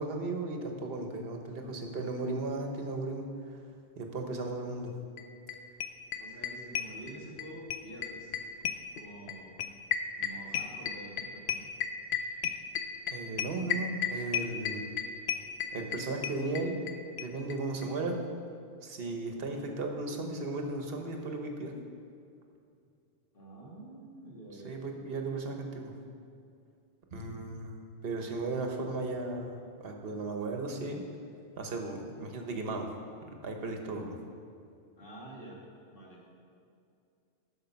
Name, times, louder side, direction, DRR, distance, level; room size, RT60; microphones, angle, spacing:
voice 1, 0.0-3.3 4.0-4.9 13.1-14.8 15.7-16.9 17.2-18.2 18.8-21.7 24.6-25.9 27.1-27.8 28.0-31.0 31.6-32.9 33.4-34.2, right 2 dB, 60° right, 3 dB, 1.2 m, -35 dB
sound 1, 5.2-5.3 5.5-5.6 5.8-7.4 7.7-16.9 17.2-17.3 17.5-17.6 17.8-17.9, left 9 dB, 70° left, 0.8 m, -32 dB
voice 2, 6.2-8.4 8.9-9.5 10.2-11.7 23.3-24.9 35.0-35.6 35.9-36.2, right 1 dB, 50° left, -4 dB, 2.1 m, -47 dB
9.3 x 6.4 x 5.8 m, 2.4 s
omnidirectional pair, 1.2 m